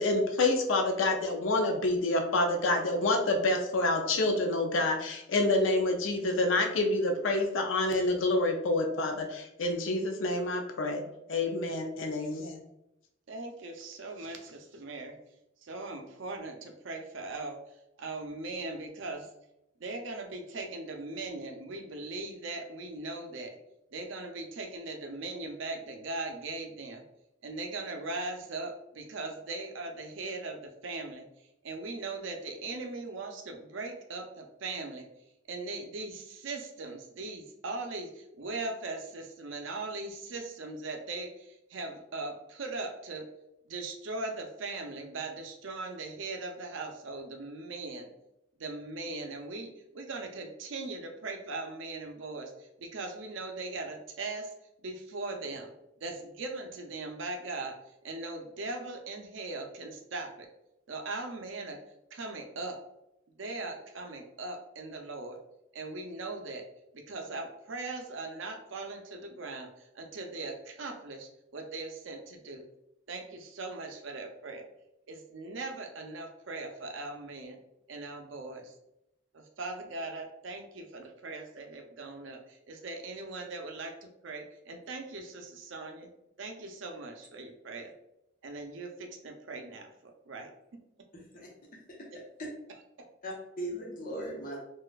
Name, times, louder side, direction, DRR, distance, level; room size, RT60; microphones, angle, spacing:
voice 1, 0.0-11.0 11.3-12.6, left 2 dB, 80° left, 3 dB, 0.5 m, -28 dB
voice 2, 13.3-15.2 15.6-17.6 18.0-19.3 19.8-23.6 23.9-27.0 27.4-31.3 31.6-35.1 35.5-43.3 43.7-48.1 48.6-54.5 54.8-55.7 56.0-57.8 58.0-60.5 60.9-61.8 62.1-62.8 63.4-65.4 65.7-66.6 66.9-72.6 73.1-74.6 75.1-77.6 77.9-78.7 79.3-86.1 86.4-87.9 88.4-90.5 93.0-93.1, right 3 dB, 75° right, 4 dB, 0.5 m, -39 dB
voice 3, 91.1-91.5 92.0-92.1 93.2-94.6, right 1 dB, 45° left, -3 dB, 0.9 m, -38 dB
4.1 x 2.4 x 2.3 m, 0.86 s
head